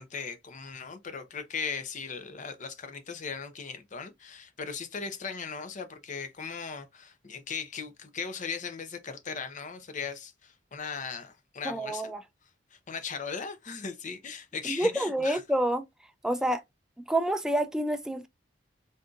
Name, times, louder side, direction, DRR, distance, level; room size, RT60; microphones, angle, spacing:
voice 1, 0.0-12.1 12.7-15.4, left 5 dB, 40° left, 0.6 m, -38 dB
voice 2, 11.6-12.2 14.6-15.8 16.2-16.6 17.0-18.3, right 1 dB, 5° right, 0.3 m, -28 dB
3.8 x 2.6 x 2.3 m
head